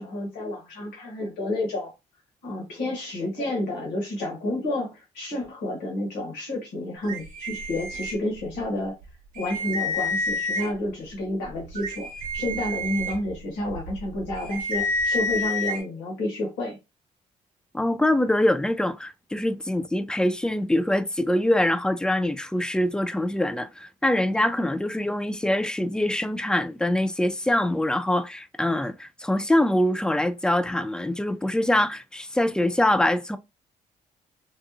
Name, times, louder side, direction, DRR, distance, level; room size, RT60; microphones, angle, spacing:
voice 1, 0.0-1.9 2.4-8.9 9.3-16.8, left 1 dB, 80° left, 1.1 m, -30 dB
sound 1, 7.0-8.6 9.0-9.1 9.3-10.9 11.4-15.8, left 1 dB, 50° right, 0.9 m, -29 dB
voice 2, 17.7-33.4, left 1 dB, 5° left, 0.3 m, -24 dB
2.5 x 2.3 x 2.6 m
hypercardioid pair, 45°, 17 cm